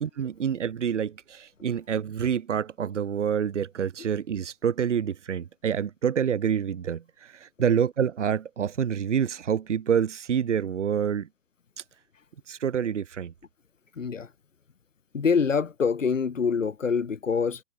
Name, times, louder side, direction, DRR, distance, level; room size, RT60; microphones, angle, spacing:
voice 1, 0.0-11.3 12.5-13.3, right 8 dB, 70° right, 1.0 m, -27 dB
voice 2, 13.9-14.3 15.1-17.6, left 5 dB, 85° left, 4.2 m, -25 dB
hypercardioid pair, 180°, 37 cm